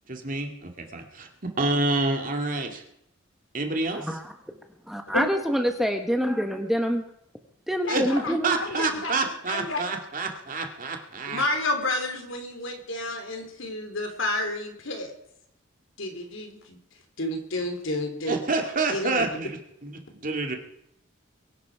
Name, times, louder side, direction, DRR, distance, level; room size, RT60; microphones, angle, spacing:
voice 1, 0.1-1.3 1.6-2.8 3.5-4.1 7.9-8.1 8.4-11.4 18.3-20.6, right 3 dB, 40° right, 4 dB, 2.2 m, -28 dB
voice 2, 4.0-4.3 4.9-7.0 7.7-8.5, equal, ahead, 5 dB, 1.2 m, -26 dB
voice 3, 7.8-8.3 8.6-9.1 9.5-9.8 11.3-15.1 16.0-16.8 17.2-18.4 18.9-19.2, left 2 dB, 75° left, 4 dB, 3.2 m, -30 dB
23.0 x 11.0 x 4.8 m, 0.76 s
head